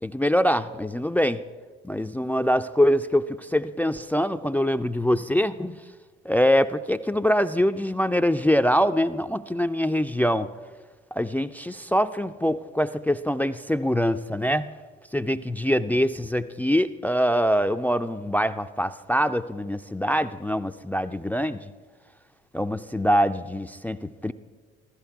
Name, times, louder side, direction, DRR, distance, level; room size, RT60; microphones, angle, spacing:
voice 1, 0.0-1.4 1.8-5.8 6.3-10.5 11.1-14.7 15.1-21.7 22.5-24.3, equal, 5° left, 10 dB, 0.4 m, -24 dB
15.0 x 13.0 x 4.7 m, 1.4 s
hypercardioid pair, 55°, 30 cm